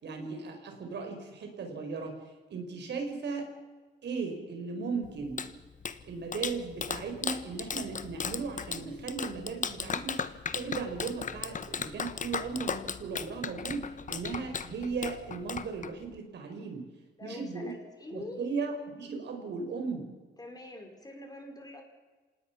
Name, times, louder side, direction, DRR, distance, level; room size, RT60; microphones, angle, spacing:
voice 1, 0.0-2.1 2.5-3.5 4.0-5.5 6.0-10.3 10.5-16.8 17.2-17.7 18.1-20.1, right 4 dB, 60° right, 4 dB, 5.1 m, -37 dB
Clapping, 5.0-16.2, left 6 dB, 40° left, 1.3 m, -37 dB
voice 2, 17.2-18.4 20.4-21.8, left 2 dB, 20° left, 3 dB, 5.3 m, -45 dB
26.5 x 19.0 x 6.1 m, 1.3 s
cardioid pair, 90°, 20 cm